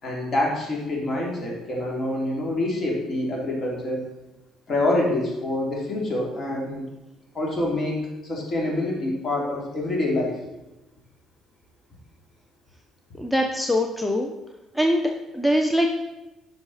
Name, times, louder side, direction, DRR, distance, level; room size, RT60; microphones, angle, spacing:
voice 1, 0.0-4.0 4.7-6.9 7.3-10.4, left 1 dB, 45° left, -2 dB, 3.2 m, -26 dB
voice 2, 13.1-14.3 14.7-15.9, equal, 10° left, 3 dB, 0.9 m, -23 dB
10.5 x 5.8 x 4.3 m, 0.99 s
hypercardioid pair, 60°, 0 cm